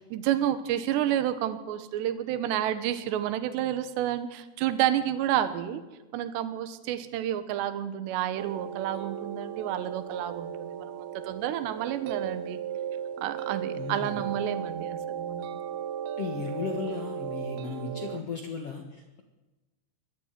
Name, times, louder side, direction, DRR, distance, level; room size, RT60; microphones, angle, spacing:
voice 1, 0.1-5.8 6.1-10.9 11.2-12.6 13.2-15.5, right 11 dB, 70° right, 11 dB, 3.1 m, -30 dB
sound 1, 8.4-18.2, right 9 dB, 90° right, 2.2 m, -36 dB
voice 2, 13.7-14.3 16.2-19.2, left 5 dB, 75° left, 3 dB, 1.4 m, -35 dB
22.0 x 13.0 x 9.3 m, 1.1 s
omnidirectional pair, 5.6 m